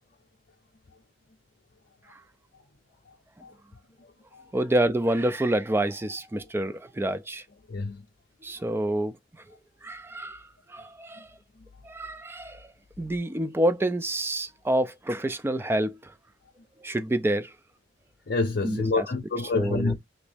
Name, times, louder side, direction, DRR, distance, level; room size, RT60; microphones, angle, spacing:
voice 1, 4.5-7.4 8.4-9.2 9.8-11.3 11.8-12.7 13.0-16.1 16.8-17.5 18.6-19.1 19.5-19.9, right 1 dB, 15° right, 0.3 m, -28 dB
voice 2, 7.7-8.0 18.3-19.9, left 3 dB, 55° left, 0.5 m, -27 dB
3.0 x 2.6 x 3.3 m
head